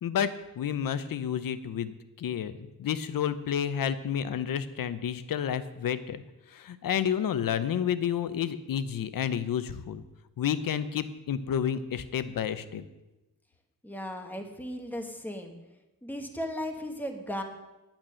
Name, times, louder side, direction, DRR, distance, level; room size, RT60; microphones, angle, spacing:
voice 1, 0.0-6.2 6.5-10.0 10.4-12.8, left 8 dB, 75° left, 13 dB, 0.8 m, -30 dB
voice 2, 13.8-15.5 16.0-17.4, equal, 5° left, 4 dB, 1.1 m, -36 dB
10.5 x 9.0 x 6.3 m, 1.0 s
wide cardioid pair, 170°, 34 cm